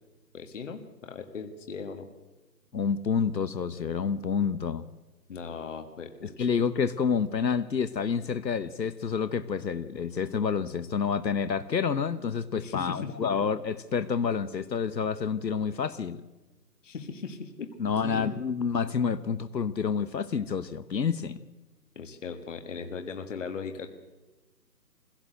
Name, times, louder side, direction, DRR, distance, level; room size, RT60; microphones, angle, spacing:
voice 1, 0.3-2.1 5.3-6.5 12.5-13.3 16.8-17.7 18.0-18.4 22.0-23.9, left 5 dB, 45° left, 6 dB, 1.7 m, -38 dB
voice 2, 2.7-4.9 6.4-16.2 17.8-21.4, left 6 dB, 80° left, 13 dB, 1.1 m, -28 dB
22.5 x 16.5 x 7.9 m, 1.1 s
figure-of-eight pair, 160°, 50 cm